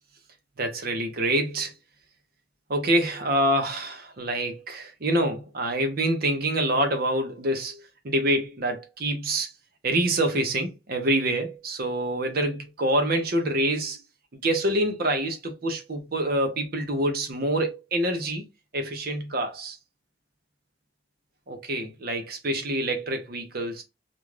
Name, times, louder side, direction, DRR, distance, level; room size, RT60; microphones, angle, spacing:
voice 1, 0.6-1.7 2.7-7.8 8.0-9.5 9.8-14.0 14.4-18.4 18.7-19.8 21.5-23.8, right 1 dB, 55° right, 0.7 m, -26 dB
2.5 x 2.3 x 3.1 m
head